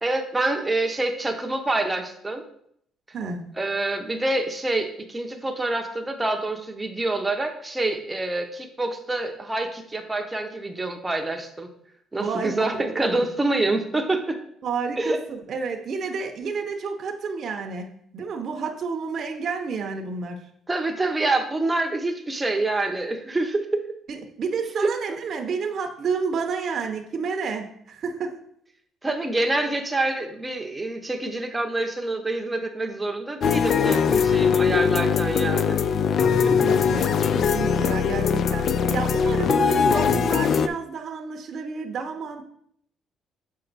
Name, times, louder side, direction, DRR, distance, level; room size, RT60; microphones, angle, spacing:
voice 1, 0.0-2.4 3.6-11.7 12.1-14.4 15.0-15.2 20.7-23.8 24.8-24.9 29.0-35.8 36.3-36.6, right 2 dB, 10° right, 5 dB, 0.7 m, -26 dB
voice 2, 3.1-3.5 12.2-12.8 13.2-13.3 14.6-20.4 24.1-28.4 36.4-42.4, right 5 dB, 45° right, 3 dB, 0.7 m, -30 dB
sound 1, 33.4-40.7, left 6 dB, 45° left, 0.3 m, -21 dB
6.9 x 4.5 x 4.0 m, 0.68 s
cardioid pair, 140°, 0 cm